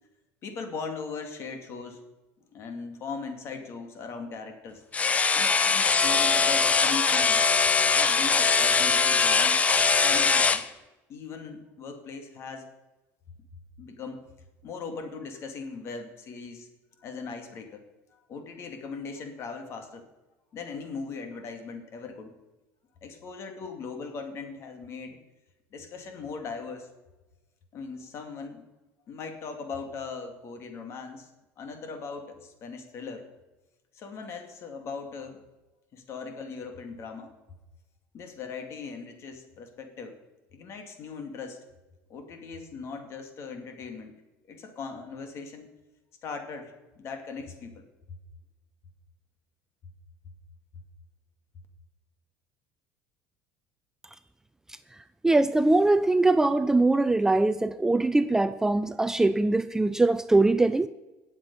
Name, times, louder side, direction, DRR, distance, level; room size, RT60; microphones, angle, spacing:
voice 1, 0.4-2.0 2.5-4.8 5.3-7.4 7.9-9.6 10.0-10.6 11.1-12.7 13.8-14.3 14.6-16.7 17.0-17.8 18.1-20.0 20.5-22.4 23.0-25.2 25.7-26.9 27.7-28.6 29.1-31.3 31.6-33.2 33.9-35.5 35.9-37.3 38.1-40.2 40.5-41.6 42.1-44.1 44.5-45.7 46.2-48.2 50.7-50.8, left 4 dB, 50° left, 6 dB, 2.3 m, -39 dB
sound 1, 4.9-10.6, left 5 dB, 25° left, 0.7 m, -22 dB
voice 2, 55.2-60.9, right 2 dB, 10° right, 11 dB, 0.4 m, -22 dB
19.5 x 7.3 x 5.4 m, 1.1 s
cardioid pair, 120°, 6 cm